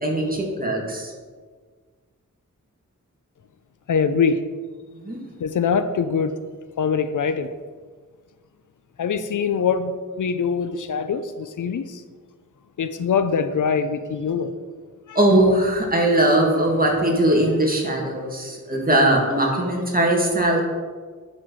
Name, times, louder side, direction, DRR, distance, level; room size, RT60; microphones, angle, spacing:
voice 1, 0.0-1.1 4.9-5.2 15.2-20.6, right 1 dB, 30° right, -1 dB, 1.9 m, -20 dB
voice 2, 3.9-4.4 5.4-6.3 6.8-7.5 9.0-12.0 12.8-14.5 15.1-15.2, left 6 dB, 75° left, 11 dB, 0.5 m, -23 dB
11.0 x 4.2 x 4.6 m, 1.5 s
wide cardioid pair, 90°, 31 cm